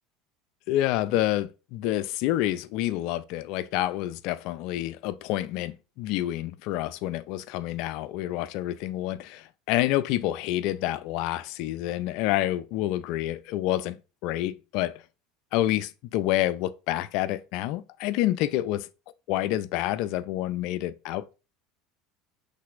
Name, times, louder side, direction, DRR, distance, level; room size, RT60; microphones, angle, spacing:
voice 1, 0.7-14.0 14.2-15.0 15.5-18.9 19.3-21.3, left 14 dB, 60° left, 0.3 m, -28 dB
5.8 x 3.3 x 2.4 m
hypercardioid pair, 85°, 0 cm